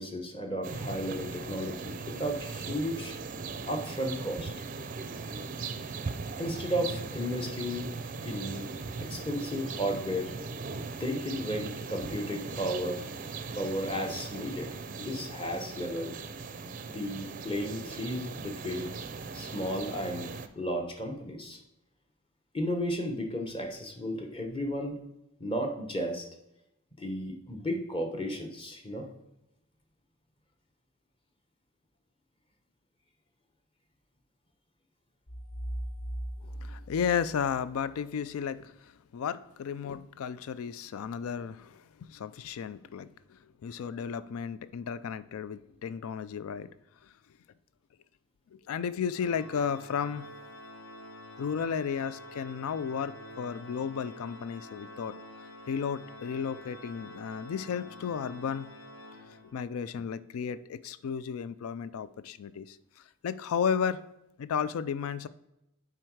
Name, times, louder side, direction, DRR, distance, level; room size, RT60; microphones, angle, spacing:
voice 1, 0.0-3.1 3.6-4.5 6.4-7.9 8.2-8.7 9.0-10.3 11.0-13.0 13.5-14.7 15.0-16.2 16.9-18.9 19.3-21.6 22.5-25.0 25.4-26.3 27.0-29.1, equal, 25° left, 4 dB, 1.0 m, -34 dB
sound 1, 0.6-20.5, right 4 dB, 40° right, 0.4 m, -39 dB
sound 2, 35.3-38.1, right 1 dB, 40° left, 0.6 m, -39 dB
voice 2, 36.6-46.7 47.0-47.1 48.5-50.3 51.4-55.1 55.7-58.7 59.5-64.0 64.4-65.3, left 7 dB, 85° left, 15 dB, 0.4 m, -34 dB
Organ, 49.1-59.8, left 1 dB, 60° left, 0.9 m, -48 dB
7.7 x 4.7 x 4.7 m, 0.90 s
head